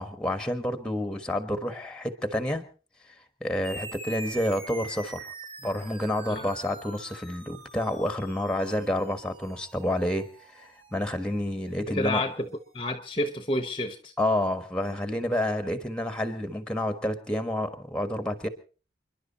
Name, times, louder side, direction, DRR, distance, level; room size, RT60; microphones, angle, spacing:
voice 1, 0.0-2.6 3.4-5.3 5.6-12.2 14.2-18.5, left 1 dB, 5° left, 9 dB, 1.4 m, -29 dB
sound 1, 3.6-12.5, right 2 dB, 30° right, 2.4 m, -45 dB
voice 2, 11.9-12.5 12.7-14.1, left 1 dB, 30° left, 9 dB, 1.0 m, -29 dB
28.5 x 11.0 x 4.2 m, 0.38 s
head